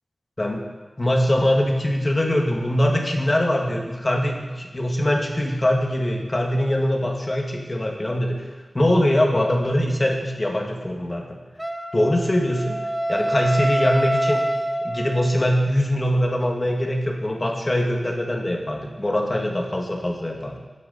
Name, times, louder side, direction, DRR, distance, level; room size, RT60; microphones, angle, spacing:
voice 1, 1.0-8.4 8.7-11.4 11.9-12.8 13.1-14.4 14.8-20.6, left 1 dB, 35° left, 1 dB, 2.1 m, -22 dB
Wind instrument woodwind instrument, 11.6-15.6, right 1 dB, 10° right, 1.0 m, -26 dB
15.0 x 9.5 x 4.3 m, 1.2 s
wide cardioid pair, 55°, 0 cm